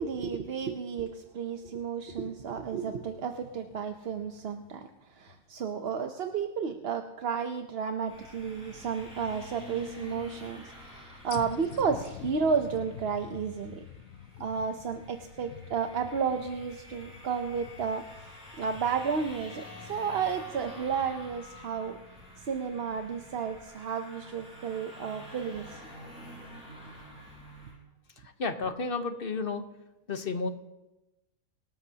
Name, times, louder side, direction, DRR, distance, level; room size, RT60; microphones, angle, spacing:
voice 1, 0.0-13.8 14.4-18.0 18.6-19.6 19.9-22.0 22.4-25.8, right 6 dB, 50° right, 6 dB, 0.9 m, -32 dB
sound 1, 2.1-5.8 6.3-6.4 11.3-21.2, left 10 dB, 70° left, 1.0 m, -48 dB
sound 2, 8.1-27.7, left 1 dB, 5° right, 6.6 m, -48 dB
voice 2, 28.2-29.6 30.1-30.5, left 4 dB, 45° left, 7 dB, 1.1 m, -32 dB
24.0 x 13.0 x 2.9 m, 1.0 s
omnidirectional pair, 1.5 m